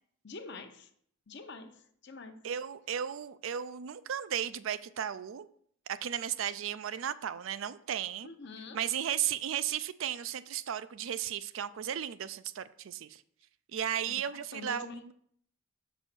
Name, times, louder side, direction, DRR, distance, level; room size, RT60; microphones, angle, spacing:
voice 1, 0.2-0.9 1.3-1.7 2.0-2.4 8.2-8.8 14.1-14.2 14.5-15.1, left 3 dB, 55° left, 7 dB, 0.8 m, -45 dB
voice 2, 2.4-5.5 5.9-8.3 8.7-13.2 13.7-15.1, right 9 dB, 70° right, 14 dB, 0.4 m, -35 dB
6.2 x 5.4 x 5.9 m, 0.64 s
head